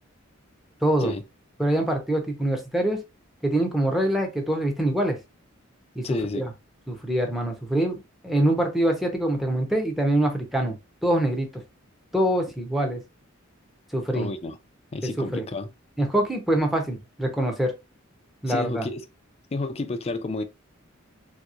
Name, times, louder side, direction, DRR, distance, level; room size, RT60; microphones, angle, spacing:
voice 1, 0.8-1.1 1.6-3.0 3.4-5.2 5.9-6.5 6.9-10.7 11.0-11.5 12.1-13.0 13.9-14.3 15.2-15.4 16.0-17.7 18.4-18.9, right 1 dB, ahead, 0.7 m, -24 dB
voice 2, 6.0-6.5 14.1-14.6 14.9-15.7 18.5-19.0 19.5-20.4, left 2 dB, 30° left, 0.4 m, -30 dB
3.4 x 2.8 x 2.4 m
head